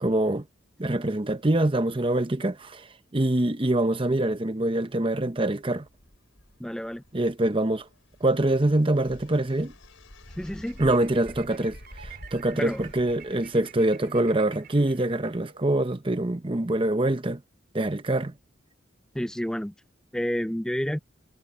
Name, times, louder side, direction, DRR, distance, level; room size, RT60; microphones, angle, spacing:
voice 1, 0.0-0.5 0.8-2.8 3.1-5.9 7.1-7.8 8.2-9.7 10.8-17.4 17.7-18.3, right 1 dB, 25° right, 0.9 m, -25 dB
sound 1, 5.6-14.0, left 1 dB, 85° left, 4.5 m, -49 dB
voice 2, 6.6-7.0 10.4-10.8 12.5-12.8 19.1-19.7 20.1-21.0, equal, 5° left, 0.4 m, -30 dB
sound 2, 10.6-15.9, right 7 dB, 50° right, 5.2 m, -49 dB
head